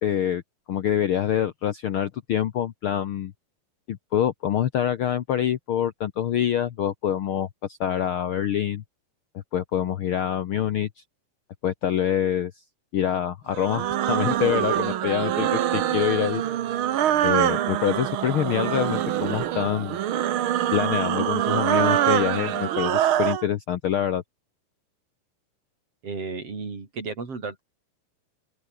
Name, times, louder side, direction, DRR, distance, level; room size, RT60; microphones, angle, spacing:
voice 1, 0.0-0.4 0.7-3.3 3.9-7.5 7.8-8.8 9.5-10.9 11.6-12.5 12.9-16.4 17.2-20.0 20.7-24.2, left 10 dB, 90° left, 1.1 m, -25 dB
sound 1, 13.5-23.5, right 11 dB, 75° right, 1.2 m, -24 dB
voice 2, 26.0-27.6, right 4 dB, 45° right, 5.6 m, -33 dB
open air
omnidirectional pair, 3.9 m